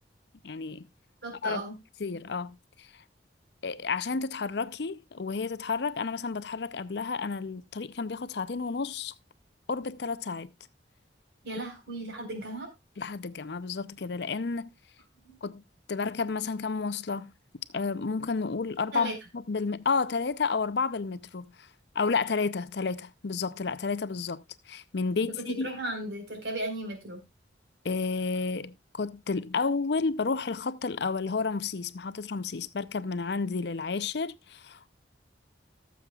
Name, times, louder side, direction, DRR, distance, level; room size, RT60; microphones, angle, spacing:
voice 1, 0.4-0.9 1.4-1.6 2.0-2.9 3.6-9.1 9.7-10.5 13.0-14.7 15.4-15.6 15.9-17.3 17.7-21.7 21.9-25.7 27.8-34.9, left 4 dB, 65° left, 0.6 m, -31 dB
voice 2, 1.2-1.7 11.4-12.7 15.2-15.3 18.9-19.1 25.5-27.2, right 1 dB, 65° right, 4.3 m, -35 dB
18.5 x 7.2 x 2.3 m
head